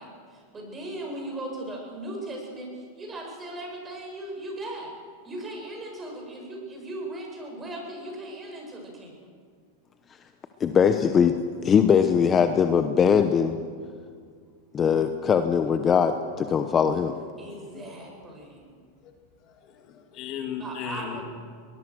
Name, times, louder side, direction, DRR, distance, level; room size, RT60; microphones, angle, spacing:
voice 1, 0.0-5.0 5.2-9.3 17.4-18.7 20.6-21.2, right 1 dB, 20° right, 0 dB, 7.7 m, -38 dB
voice 2, 10.6-11.3 11.6-13.6 14.7-17.1, left 7 dB, 30° left, 8 dB, 1.1 m, -21 dB
voice 3, 17.5-18.1 19.0-19.1 19.4-21.2, left 7 dB, 45° left, 4 dB, 2.4 m, -37 dB
23.0 x 20.0 x 6.5 m, 2.1 s
hypercardioid pair, 105°, 0 cm